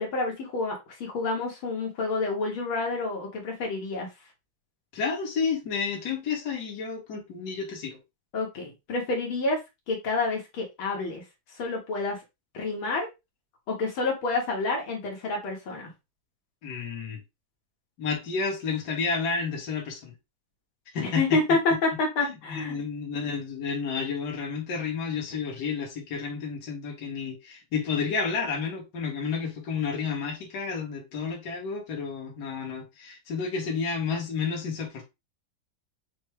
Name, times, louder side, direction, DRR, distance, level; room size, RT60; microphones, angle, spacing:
voice 1, 0.0-4.1 8.3-9.6 9.9-11.2 11.6-12.2 12.5-13.1 13.7-15.9 21.0-22.8, left 3 dB, 80° left, 2.2 m, -28 dB
voice 2, 4.9-8.0 16.6-17.2 18.0-20.1 20.9-21.4 22.2-35.0, left 5 dB, 55° left, 1.7 m, -31 dB
6.2 x 2.3 x 3.2 m
omnidirectional pair, 2.3 m